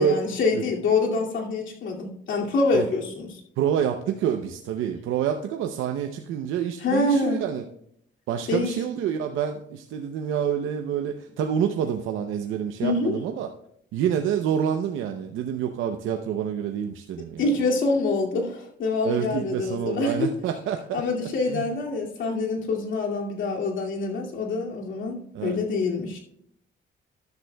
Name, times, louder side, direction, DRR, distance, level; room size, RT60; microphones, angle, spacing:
voice 1, 0.0-3.3 6.8-7.4 8.5-8.8 12.8-13.2 17.4-20.3 20.9-26.2, left 3 dB, 75° left, -1 dB, 2.4 m, -25 dB
voice 2, 3.6-7.6 8.3-13.5 13.9-17.5 19.0-21.0 21.5-21.7 25.3-25.6, right 8 dB, 85° right, 5 dB, 0.7 m, -27 dB
14.0 x 10.5 x 2.3 m, 0.71 s
cardioid pair, 90°, 20 cm